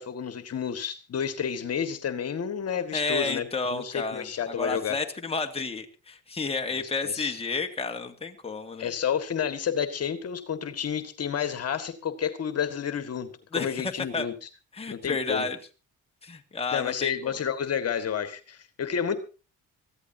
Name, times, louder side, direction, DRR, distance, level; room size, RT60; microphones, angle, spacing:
voice 1, 0.0-5.0 6.7-7.3 8.8-13.3 13.6-14.5 14.9-15.5 16.7-19.2, left 8 dB, 55° left, 9 dB, 1.8 m, -30 dB
voice 2, 2.9-8.9 13.5-13.7 14.1-14.3 14.7-15.6 16.2-17.4, left 3 dB, 20° left, 3 dB, 2.0 m, -31 dB
23.0 x 15.0 x 2.8 m, 0.33 s
cardioid pair, 90°, 30 cm